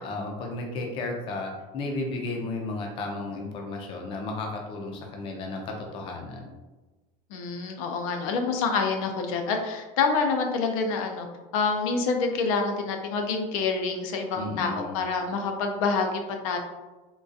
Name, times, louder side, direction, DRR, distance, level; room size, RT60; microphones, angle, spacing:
voice 1, 0.0-6.5 14.3-15.0, left 2 dB, 30° left, 1 dB, 0.5 m, -33 dB
voice 2, 7.3-11.3 11.5-16.6, left 4 dB, 80° left, 4 dB, 0.5 m, -27 dB
3.7 x 2.3 x 2.6 m, 1.2 s
cardioid pair, 165°, 17 cm